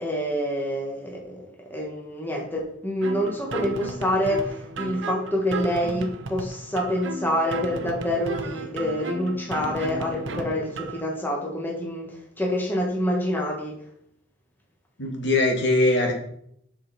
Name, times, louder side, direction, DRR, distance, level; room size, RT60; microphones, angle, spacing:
voice 1, 0.0-13.8, equal, 10° left, -1 dB, 1.5 m, -27 dB
sound 1, 3.0-11.0, right 2 dB, 65° right, 0.8 m, -34 dB
voice 2, 15.0-16.1, left 2 dB, 60° left, 2 dB, 1.8 m, -21 dB
7.6 x 6.3 x 4.3 m, 0.70 s
head